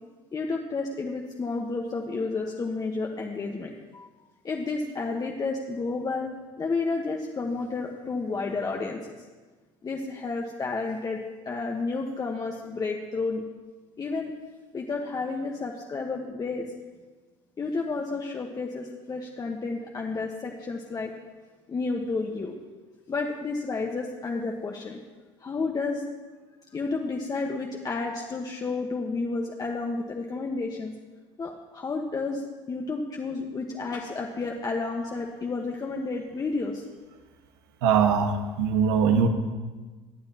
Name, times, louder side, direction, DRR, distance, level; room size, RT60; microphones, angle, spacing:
voice 1, 0.3-4.1 4.4-6.3 6.6-9.2 9.8-13.4 14.0-14.3 14.7-16.6 17.6-21.1 21.7-22.6 23.1-25.0 25.4-26.0 26.7-30.9 31.4-36.8, left 3 dB, 30° left, 0 dB, 1.2 m, -31 dB
voice 2, 37.8-39.3, right 6 dB, 80° right, 5 dB, 1.4 m, -22 dB
18.0 x 9.5 x 2.9 m, 1.3 s
hypercardioid pair, 80°, 14 cm